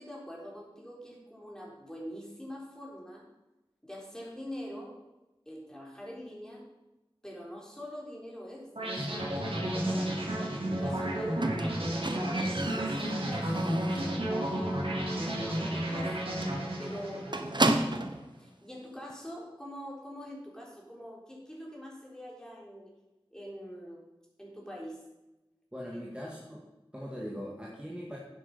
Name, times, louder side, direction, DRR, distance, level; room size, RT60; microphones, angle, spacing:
voice 1, 0.0-3.3 3.8-5.0 5.5-6.6 7.2-14.8 15.2-16.1 16.8-22.9 23.3-24.0 24.4-25.0 25.9-26.0, equal, 5° left, -3 dB, 4.1 m, -44 dB
sound 1, 8.8-17.8, right 1 dB, 80° right, 3.3 m, -32 dB
Squeak, 11.4-14.2 14.5-14.9 15.2-15.3 15.7-15.8 16.0-16.2 16.4-18.3 19.1-19.2, right 2 dB, 55° right, 1.1 m, -32 dB
voice 2, 25.7-26.6 26.9-28.2, equal, 10° right, -3 dB, 1.9 m, -40 dB
10.5 x 8.2 x 5.6 m, 0.99 s
wide cardioid pair, 40°, 9 cm